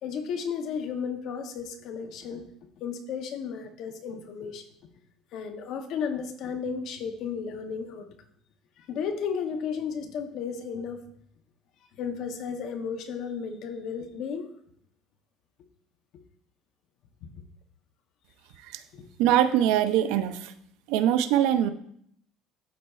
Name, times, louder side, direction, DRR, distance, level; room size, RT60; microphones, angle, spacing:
voice 1, 0.0-2.5 2.8-4.7 5.3-8.2 8.8-11.0 12.0-14.5 16.1-16.2 17.2-17.3 18.9-19.1, left 6 dB, 50° left, 7 dB, 0.7 m, -34 dB
voice 2, 19.2-20.5 20.9-21.7, right 11 dB, 80° right, 11 dB, 0.5 m, -22 dB
12.0 x 4.2 x 2.3 m, 0.68 s
cardioid pair, 165°, 0 cm